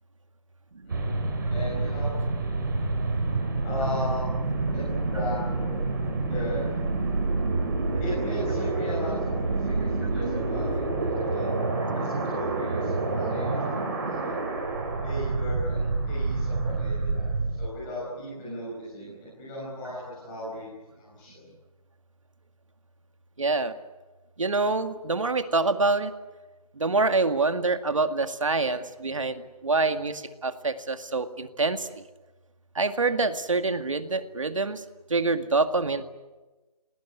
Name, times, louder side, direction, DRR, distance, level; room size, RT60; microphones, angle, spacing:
sound 1, 0.9-17.7, right 3 dB, 30° right, 4.4 m, -28 dB
voice 1, 1.5-2.1 3.6-4.3 4.7-5.8 6.3-6.7 8.0-11.7 11.9-14.4 15.0-21.5, equal, 10° left, -8 dB, 6.0 m, -37 dB
voice 2, 23.4-23.7 24.4-26.1 26.8-32.0 32.8-34.8 35.1-36.0, right 3 dB, 55° right, 9 dB, 2.0 m, -26 dB
27.0 x 18.5 x 9.7 m, 1.2 s
figure-of-eight pair, 175°, 20 cm